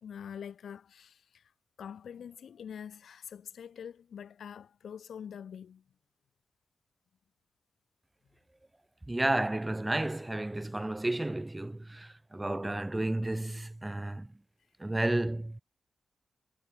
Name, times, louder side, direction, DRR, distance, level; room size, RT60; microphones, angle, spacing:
voice 1, 0.0-1.5 1.8-5.8 14.0-14.1, left 8 dB, 80° left, 1.8 m, -45 dB
voice 2, 9.1-14.3 14.8-15.6, right 1 dB, 20° right, 1.1 m, -32 dB
supercardioid pair, 45°, 0 cm